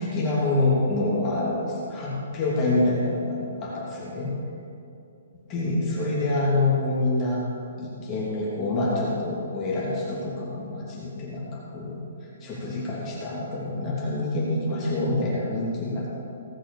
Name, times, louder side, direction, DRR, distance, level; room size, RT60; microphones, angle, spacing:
voice 1, 0.0-4.3 5.5-7.4 7.8-12.0 12.4-16.2, left 2 dB, 20° left, -6 dB, 2.5 m, -26 dB
17.0 x 6.0 x 6.9 m, 2.7 s
hypercardioid pair, 175°, 0 cm